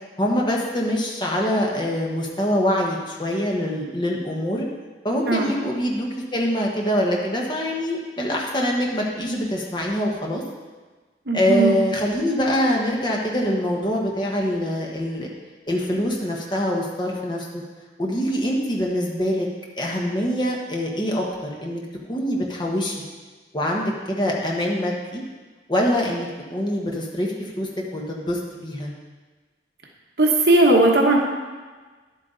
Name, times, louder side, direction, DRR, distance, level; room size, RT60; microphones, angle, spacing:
voice 1, 0.2-4.7 5.0-10.4 11.3-15.3 15.7-17.6 18.0-19.5 19.8-21.8 22.1-22.9 23.5-25.2 25.7-28.9, equal, 25° left, -2 dB, 1.3 m, -24 dB
voice 2, 11.3-11.8 30.2-31.2, right 2 dB, 65° right, 0 dB, 1.2 m, -17 dB
11.0 x 8.2 x 3.9 m, 1.3 s
head